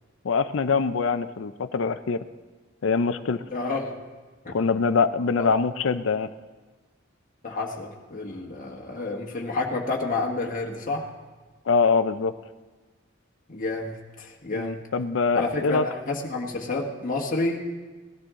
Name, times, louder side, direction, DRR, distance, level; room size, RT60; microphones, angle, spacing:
voice 1, 0.2-2.2 2.8-3.4 4.5-6.3 11.7-12.3 14.5-15.9, left 5 dB, 75° left, 12 dB, 0.5 m, -24 dB
voice 2, 3.5-4.0 4.4-4.5 5.4-5.5 7.4-11.1 13.5-14.9 15.3-17.6, left 3 dB, 45° left, -1 dB, 1.4 m, -29 dB
18.0 x 13.0 x 3.7 m, 1.3 s
head